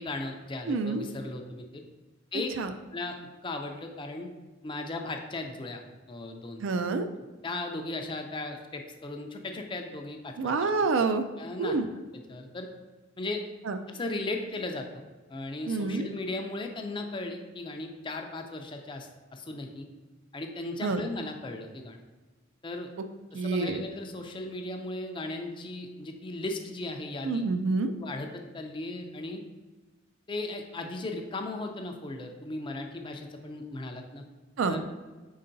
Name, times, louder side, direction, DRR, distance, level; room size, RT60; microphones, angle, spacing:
voice 1, 0.0-1.8 2.3-2.5 2.9-3.2 3.4-4.3 4.6-5.8 6.1-6.6 7.4-10.3 10.6-10.7 11.4-11.8 12.1-12.7 13.2-13.4 13.9-15.0 15.3-19.9 20.3-22.0 22.6-22.9 23.4-27.4 28.0-29.4 30.3-34.2 34.7-34.8, left 2 dB, 25° left, 4 dB, 0.4 m, -36 dB
voice 2, 0.7-1.0 2.6-2.7 6.6-7.1 10.4-11.2 11.6-11.9 13.7-13.8 15.7-16.1 20.8-21.0 23.3-23.8 27.2-27.9 34.6-34.7, right 4 dB, 65° right, 8 dB, 0.3 m, -27 dB
5.5 x 3.7 x 2.6 m, 1.3 s
head